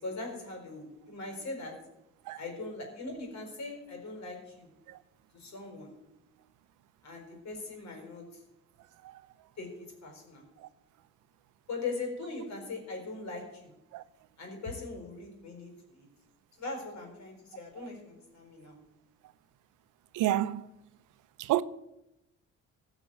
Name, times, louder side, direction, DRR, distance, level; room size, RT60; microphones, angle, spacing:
voice 1, 0.0-1.7 2.4-4.7 5.3-5.9 7.0-8.4 9.6-9.7 10.0-10.4 11.7-13.7 14.4-16.1 16.6-18.8, left 3 dB, 65° left, 4.6 m, -40 dB
voice 2, 20.1-20.6 21.4-21.6, right 13 dB, 90° right, 0.6 m, -28 dB
16.0 x 6.0 x 7.7 m
cardioid pair, 90°, 30 cm